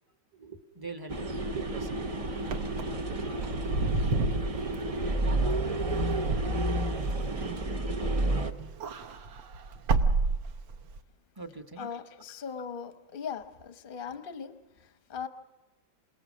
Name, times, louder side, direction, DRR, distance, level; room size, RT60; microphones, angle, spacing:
voice 1, 0.4-2.1 11.4-11.9, right 4 dB, 20° right, 5 dB, 0.7 m, -41 dB
sound 1, 1.1-8.5, right 1 dB, 60° right, 0.3 m, -31 dB
Wind / Car, 2.4-8.2 8.5-11.0, right 3 dB, 85° right, 1.8 m, -31 dB
voice 2, 11.8-15.3, left 6 dB, 40° left, 9 dB, 0.8 m, -39 dB
27.5 x 19.0 x 6.2 m, 1.1 s
omnidirectional pair, 2.0 m